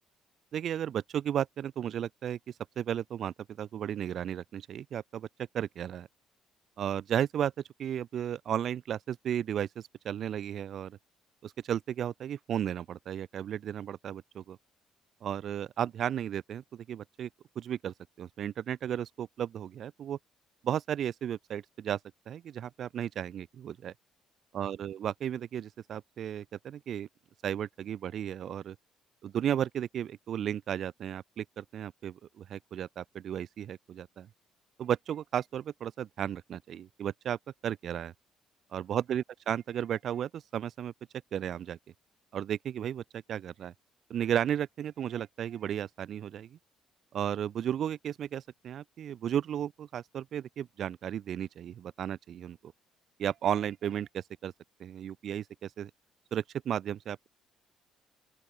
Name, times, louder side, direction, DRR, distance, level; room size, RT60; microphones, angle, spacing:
voice 1, 0.5-2.4 2.8-5.3 5.5-6.1 6.8-7.5 7.8-11.0 11.4-14.6 15.2-17.3 17.6-20.2 20.6-22.0 22.3-23.9 24.5-27.1 27.4-28.8 29.2-34.3 34.8-38.1 38.7-40.9 41.3-41.8 42.3-43.7 44.1-46.6 47.1-52.7 53.2-54.5 54.8-55.9 56.3-57.3, right 10 dB, 45° right, 2.6 m, -34 dB
open air
cardioid pair, 165°, 0 cm